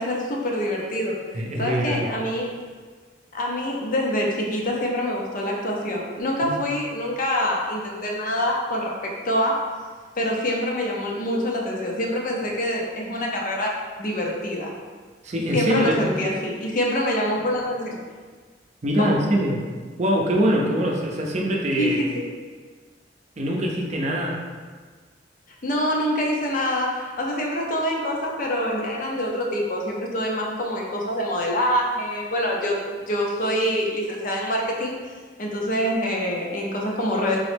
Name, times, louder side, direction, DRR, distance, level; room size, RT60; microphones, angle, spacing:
voice 1, 0.0-2.5 3.3-9.6 10.2-13.7 14.0-14.7 15.5-18.0 19.0-19.1 21.8-22.2 25.6-34.9 35.4-37.4, equal, 50° left, -1 dB, 0.6 m, -25 dB
voice 2, 1.3-2.1 6.4-6.5 15.2-16.1 18.8-19.6 20.0-22.0 23.4-24.4, equal, 40° right, -1 dB, 0.5 m, -23 dB
3.8 x 3.0 x 3.3 m, 1.5 s
head